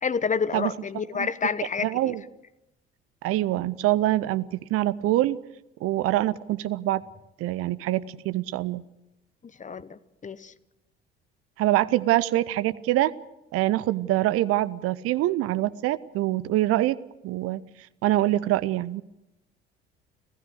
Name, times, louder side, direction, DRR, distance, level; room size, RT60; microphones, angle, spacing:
voice 1, 0.0-2.1 9.6-10.5, left 6 dB, 25° left, 17 dB, 1.0 m, -29 dB
voice 2, 1.8-2.2 3.2-5.4 5.8-7.0 7.4-8.8 11.6-13.1 13.5-17.0 17.2-17.6 18.0-19.0, right 15 dB, 50° right, 17 dB, 0.7 m, -24 dB
30.0 x 15.0 x 6.5 m, 0.92 s
figure-of-eight pair, 50°, 30 cm